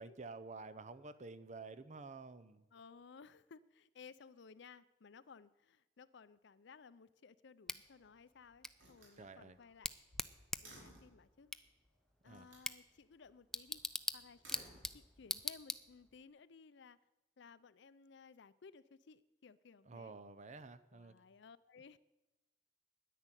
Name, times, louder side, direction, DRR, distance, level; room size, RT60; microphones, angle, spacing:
voice 1, 0.0-2.7 9.2-9.6 12.2-12.5 19.8-21.1, right 3 dB, 40° right, 12 dB, 0.7 m, -50 dB
voice 2, 2.7-9.9 10.6-11.5 12.2-13.8 14.1-14.6 14.9-17.0 17.4-20.1 20.9-22.0, left 5 dB, 65° left, 17 dB, 0.5 m, -59 dB
Bicycle / Tick, 7.7-16.2, left 1 dB, 5° left, 0.4 m, -45 dB
Slam, 7.7-8.3 8.7-11.2 12.3-12.7 14.2-15.4, right 1 dB, 80° right, 4.9 m, -60 dB
10.0 x 10.0 x 9.1 m, 1.0 s
head